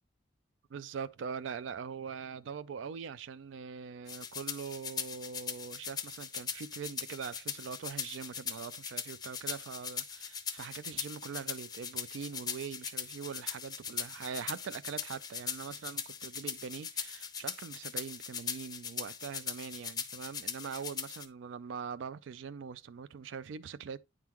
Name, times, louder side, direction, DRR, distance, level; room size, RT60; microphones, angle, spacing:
voice 1, 0.7-24.0, right 6 dB, 75° right, 0.4 m, -42 dB
sound 1, 4.1-21.2, left 7 dB, 20° left, 0.6 m, -40 dB
9.3 x 3.8 x 2.9 m
head